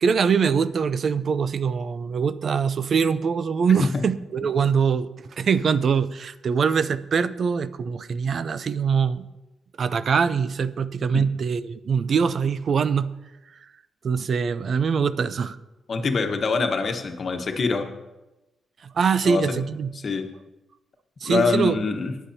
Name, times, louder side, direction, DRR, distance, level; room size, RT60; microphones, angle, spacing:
voice 1, 0.0-9.3 9.8-13.1 14.0-15.6 18.8-19.9 21.2-21.8, right 6 dB, 55° right, 14 dB, 0.5 m, -23 dB
voice 2, 15.9-17.9 19.2-19.6 19.9-20.3 21.3-22.1, left 4 dB, 50° left, 5 dB, 1.2 m, -25 dB
19.0 x 8.3 x 2.8 m, 1.0 s
cardioid pair, 110°, 0 cm